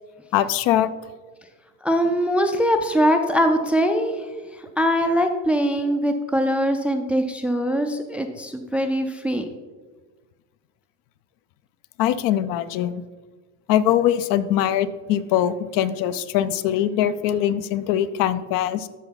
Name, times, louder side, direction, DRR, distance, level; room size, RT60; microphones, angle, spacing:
voice 1, 0.3-0.9 12.0-13.0 13.7-18.9, left 11 dB, 65° left, 14 dB, 0.6 m, -22 dB
voice 2, 1.8-4.1 4.8-9.5, equal, 5° right, 6 dB, 0.3 m, -22 dB
13.0 x 4.5 x 4.0 m, 1.3 s
cardioid pair, 135°, 35 cm